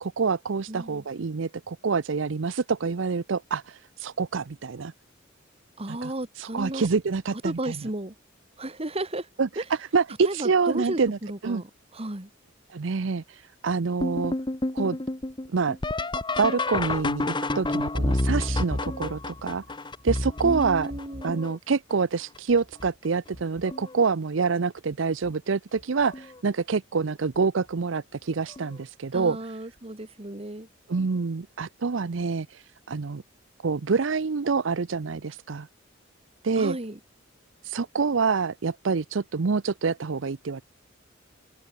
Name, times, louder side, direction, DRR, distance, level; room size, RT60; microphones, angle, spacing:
voice 1, 0.0-4.9 6.0-6.1 6.4-7.8 9.4-9.5 9.9-11.2 11.4-11.6 12.7-14.3 14.7-15.0 15.5-15.8 16.4-19.6 20.0-20.9 21.2-29.4 30.9-33.2 33.6-35.7 36.4-36.8 37.6-40.6, right 5 dB, 70° right, 0.6 m, -26 dB
voice 2, 0.7-1.0 5.8-6.9 7.4-8.1 8.6-9.3 9.6-9.7 10.2-12.3 20.4-21.4 29.1-30.7 36.6-37.0, right 1 dB, 30° right, 2.2 m, -34 dB
sound 1, 14.0-21.7 22.4-22.9 23.3-24.0 25.2-25.3 26.1-26.4 28.6-28.7 31.0-31.1, left 2 dB, 25° left, 1.2 m, -29 dB
open air
head